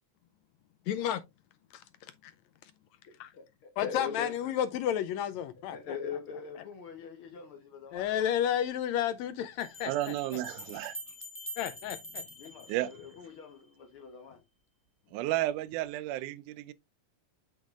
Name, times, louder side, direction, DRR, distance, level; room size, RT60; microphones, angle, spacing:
voice 1, 0.9-1.2 1.7-1.8 2.2-2.3 3.2-3.3 3.8-5.8 7.9-10.1 11.6-12.2, left 10 dB, 80° left, 1.7 m, -31 dB
voice 2, 3.3-4.3 5.7-8.3 12.4-14.4, left 6 dB, 60° left, 1.5 m, -42 dB
sound 1, 8.0-8.1 9.6-13.6, equal, 5° left, 0.4 m, -45 dB
voice 3, 9.8-11.0 12.7-12.9 15.1-16.7, right 15 dB, 90° right, 2.1 m, -32 dB
7.5 x 6.2 x 2.4 m
omnidirectional pair, 3.5 m